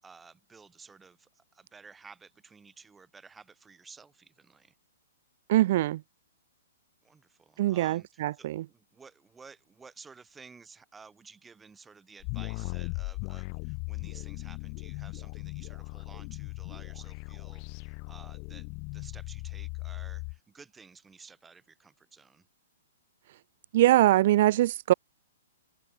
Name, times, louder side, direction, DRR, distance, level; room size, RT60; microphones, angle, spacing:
voice 1, 0.0-4.8 7.0-22.5, right 5 dB, 10° right, 5.7 m, -53 dB
voice 2, 5.5-6.0 7.6-8.6 23.7-24.9, right 15 dB, 50° right, 0.6 m, -23 dB
sound 1, 12.2-20.4, left 40 dB or more, 40° left, 4.6 m, -38 dB
hypercardioid pair, 120°, 0 cm